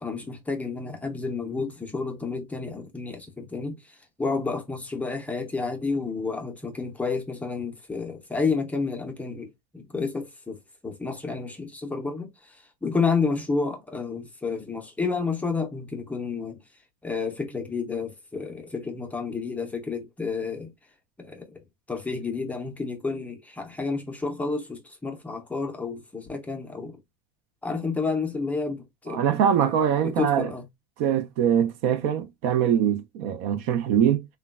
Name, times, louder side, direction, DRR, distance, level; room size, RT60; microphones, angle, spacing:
voice 1, 0.0-10.6 10.8-16.6 17.0-20.7 21.2-21.6 21.9-27.0 27.6-29.2 30.2-30.6, left 4 dB, 10° left, 0.5 m, -30 dB
voice 2, 29.1-30.5 31.0-34.3, right 9 dB, 60° right, 0.5 m, -23 dB
3.0 x 2.2 x 2.2 m
supercardioid pair, 140°, 18 cm